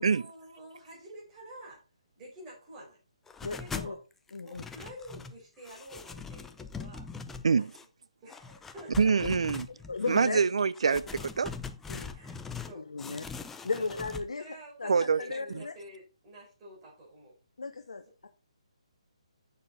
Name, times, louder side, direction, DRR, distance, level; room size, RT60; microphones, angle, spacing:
voice 1, 0.0-1.8 2.2-3.0 3.6-4.0 4.4-7.1 7.5-7.7 8.2-9.1 12.1-12.4 12.7-13.4 13.8-14.0 14.4-17.3, right 1 dB, 20° right, 4.7 m, -49 dB
sound 1, 3.3-4.0 4.3-5.4 5.6-7.9 8.3-10.2 10.7-12.7 13.0-14.3, left 5 dB, 5° left, 0.5 m, -42 dB
voice 2, 3.4-4.0 4.3-4.6 9.2-9.3 9.9-10.4 10.9-11.0 11.9-12.1 12.7-13.3 13.6-14.4 14.8-15.7 17.6-18.3, left 4 dB, 70° left, 0.9 m, -35 dB
voice 3, 9.0-9.7 10.1-11.5 14.9-15.2 15.5-15.6, right 5 dB, 65° right, 0.5 m, -25 dB
8.4 x 6.8 x 4.1 m
figure-of-eight pair, 140°, 3 cm